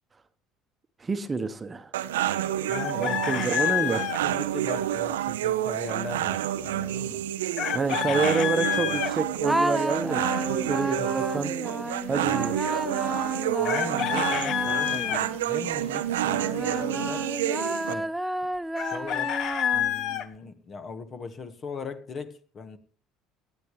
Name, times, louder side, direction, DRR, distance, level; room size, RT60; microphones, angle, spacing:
voice 1, 1.0-1.9 3.0-4.0 7.7-10.2 10.7-11.5 12.1-12.6, right 4 dB, 25° right, 9 dB, 1.1 m, -28 dB
sound 1, 1.9-17.9, right 12 dB, 75° right, 0.6 m, -29 dB
Chicken rooster, 2.7-4.2 7.6-9.1 13.6-15.2 18.8-20.3, left 10 dB, 55° left, 0.9 m, -28 dB
voice 2, 2.7-3.4 3.8-7.2 8.1-9.0 10.8-11.2 13.6-17.3 17.9-18.1 18.4-18.5 18.8-19.4 19.7-22.8, left 4 dB, 40° left, 10 dB, 1.5 m, -39 dB
sound 2, 9.4-15.7 16.3-20.2, right 1 dB, 5° right, 0.5 m, -31 dB
18.0 x 11.0 x 3.2 m, 0.39 s
hypercardioid pair, 65°, 0 cm